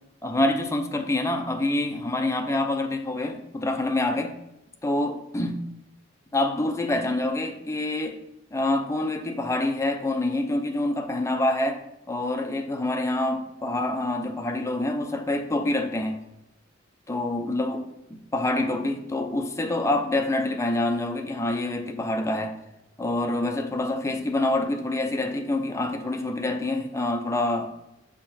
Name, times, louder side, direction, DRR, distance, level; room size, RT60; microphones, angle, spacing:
voice 1, 0.2-4.4 4.8-5.7 6.3-8.2 8.5-11.8 12.1-16.2 17.1-17.9 18.1-22.6 23.0-27.7, left 2 dB, 15° left, 5 dB, 0.6 m, -26 dB
6.0 x 5.5 x 4.1 m, 0.88 s
head